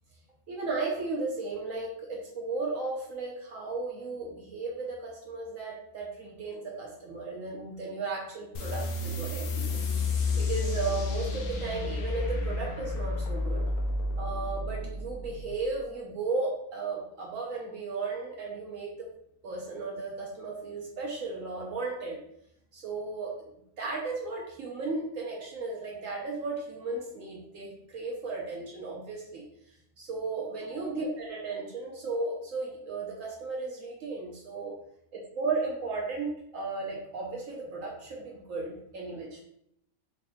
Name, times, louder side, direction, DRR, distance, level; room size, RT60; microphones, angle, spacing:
voice 1, 0.5-9.8 10.3-13.6 14.2-19.1 19.4-22.2 22.7-23.3 23.8-29.4 30.0-34.8 35.1-39.4, right 3 dB, 70° right, -2 dB, 1.1 m, -35 dB
sound 1, 8.5-15.7, left 3 dB, 80° left, 1.1 m, -31 dB
4.1 x 2.8 x 2.6 m, 0.73 s
omnidirectional pair, 1.5 m